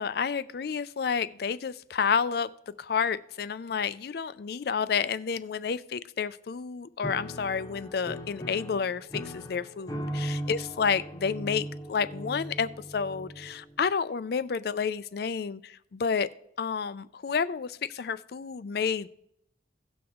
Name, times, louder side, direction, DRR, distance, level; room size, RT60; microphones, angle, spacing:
voice 1, 0.0-2.5 2.8-16.3 16.6-19.1, left 6 dB, 55° left, 16 dB, 0.4 m, -30 dB
Piano, 7.0-13.8, equal, 20° left, 0.8 m, -38 dB
17.0 x 6.0 x 3.6 m, 0.76 s
head